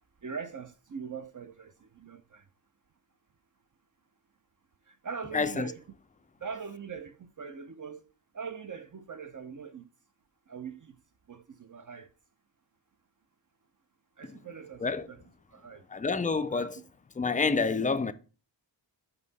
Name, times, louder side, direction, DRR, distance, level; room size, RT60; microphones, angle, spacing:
voice 1, 0.2-2.4 4.9-5.8 6.4-8.0 8.3-9.8 10.5-10.9 11.3-12.1 14.2-15.2 15.5-15.8 16.5-16.7, right 6 dB, 45° right, 0.6 m, -42 dB
voice 2, 5.3-5.7 14.2-14.4 14.8-15.1 15.9-16.8 17.2-18.1, left 4 dB, 20° left, 0.3 m, -28 dB
5.4 x 5.3 x 4.0 m
wide cardioid pair, 115°, 44 cm